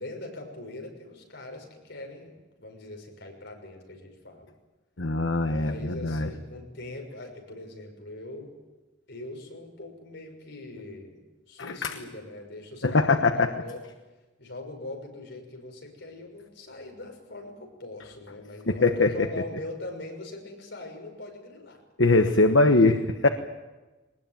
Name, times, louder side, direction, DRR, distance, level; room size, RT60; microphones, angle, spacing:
voice 1, 0.0-2.3 2.6-4.5 5.4-8.5 9.1-11.2 11.5-13.8 14.4-21.8, left 2 dB, 65° left, 2 dB, 6.3 m, -41 dB
voice 2, 5.0-6.3 11.6-12.0 12.8-13.5 18.7-19.3 22.0-23.3, left 3 dB, 85° left, 7 dB, 1.2 m, -22 dB
22.0 x 19.5 x 9.2 m, 1.2 s
head